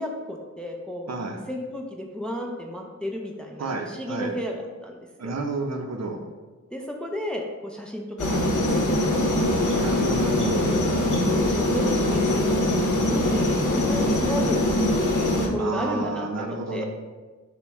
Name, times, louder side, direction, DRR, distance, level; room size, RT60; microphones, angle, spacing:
voice 1, 0.0-1.1 1.5-5.3 6.7-8.9 9.2-9.4 10.1-10.5 11.2-12.2 12.5-14.6 15.4-16.8, left 1 dB, 5° left, 1 dB, 0.5 m, -33 dB
voice 2, 1.1-1.4 3.6-4.3 5.2-6.2 9.7-10.6 15.6-16.8, right 3 dB, 60° right, 4 dB, 0.6 m, -30 dB
sound 1, 8.2-15.5, left 1 dB, 90° left, 0.7 m, -22 dB
5.7 x 2.2 x 3.5 m, 1.3 s
wide cardioid pair, 70°, 30 cm